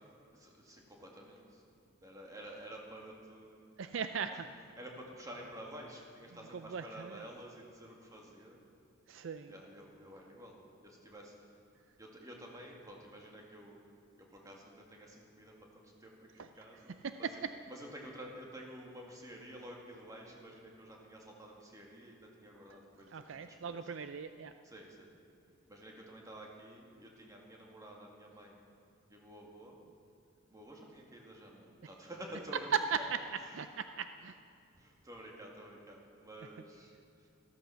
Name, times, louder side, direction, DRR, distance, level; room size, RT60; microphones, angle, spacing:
voice 1, 0.3-1.6 2.0-3.7 4.8-8.6 9.5-10.6 10.8-11.6 12.0-13.8 14.2-17.3 17.7-23.8 24.6-25.1 25.7-28.6 29.1-29.8 30.5-32.7 33.4-33.6 34.7-37.3, right 1 dB, 15° right, -1 dB, 2.0 m, -51 dB
voice 2, 3.8-4.5 6.5-7.2 9.1-9.5 16.4-16.5 17.0-17.3 23.1-24.5 32.7-33.2 33.5-34.4, right 6 dB, 60° right, 10 dB, 0.4 m, -37 dB
14.5 x 13.5 x 5.7 m, 2.6 s
head